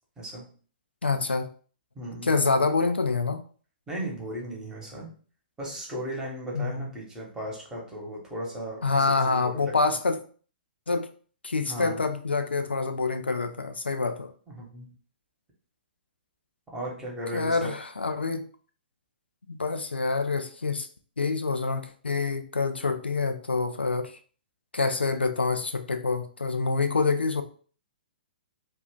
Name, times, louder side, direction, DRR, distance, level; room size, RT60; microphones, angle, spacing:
voice 1, 1.0-1.5 2.2-3.4 6.5-6.9 8.8-10.2 10.9-11.1 11.4-14.3 17.3-18.4 19.5-20.9 21.2-24.2 24.7-27.4, left 4 dB, 90° left, 0.4 m, -26 dB
voice 2, 1.9-2.4 3.9-5.1 5.6-9.8 11.7-12.0 14.5-14.9 16.7-17.8, equal, 10° right, 1.1 m, -36 dB
2.5 x 2.5 x 3.5 m
figure-of-eight pair, 120°, 6 cm